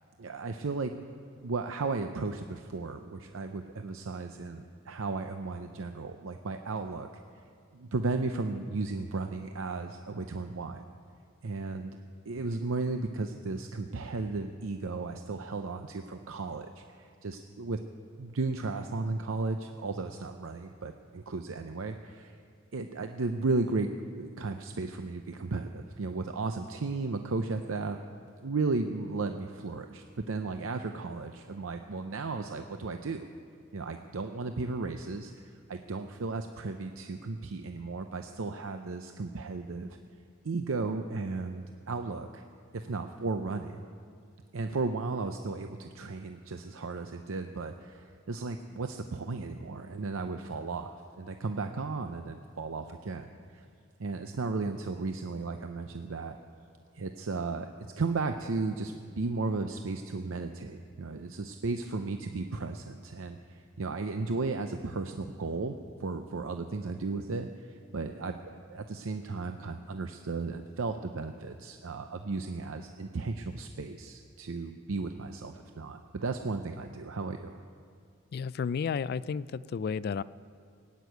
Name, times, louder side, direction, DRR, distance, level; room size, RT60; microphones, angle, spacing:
voice 1, 0.2-0.9 1.4-7.1 7.7-10.8 11.4-11.9 12.3-17.8 18.2-22.4 22.7-28.0 28.4-33.3 33.7-40.0 40.4-42.4 42.7-43.9 44.5-53.6 54.0-56.4 56.9-57.7 58.0-77.6, right 3 dB, 70° right, 6 dB, 0.6 m, -35 dB
voice 2, 78.3-80.2, left 6 dB, 50° left, 18 dB, 0.3 m, -32 dB
18.5 x 8.3 x 9.3 m, 2.2 s
head